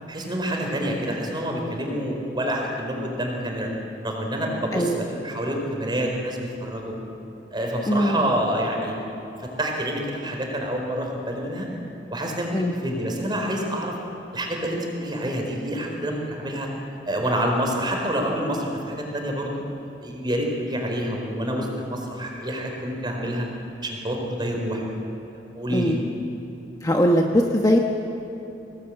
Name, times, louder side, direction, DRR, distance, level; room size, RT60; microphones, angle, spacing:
voice 1, 0.1-3.7 4.0-7.0 7.5-9.2 9.6-11.7 12.1-12.5 12.8-13.9 14.3-16.7 17.1-19.6 20.0-23.5 23.8-24.9 25.3-25.9, equal, 25° right, 1 dB, 4.5 m, -27 dB
voice 2, 7.9-8.3 12.5-12.8 25.7-26.0 26.8-27.8, equal, 20° left, 1 dB, 1.2 m, -21 dB
22.5 x 18.5 x 9.0 m, 3.0 s
head